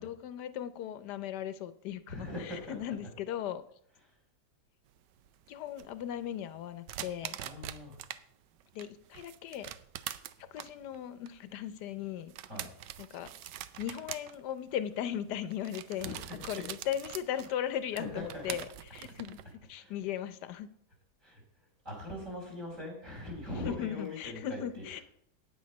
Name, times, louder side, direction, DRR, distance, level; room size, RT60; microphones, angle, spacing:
voice 1, 0.0-3.6 5.5-7.4 8.7-9.7 10.5-12.3 13.0-13.3 13.8-16.1 16.4-19.4 19.7-20.7 23.6-25.0, left 10 dB, 80° left, 1.3 m, -37 dB
voice 2, 2.1-2.8 7.4-8.0 12.4-12.7 16.0-16.5 17.9-18.4 19.8-19.9 21.2-21.4 21.8-24.8, left 1 dB, 50° right, 4.9 m, -41 dB
sound 1, 4.9-8.2 8.6-19.6, right 12 dB, 90° right, 1.2 m, -44 dB
9.4 x 9.0 x 5.3 m
omnidirectional pair, 1.8 m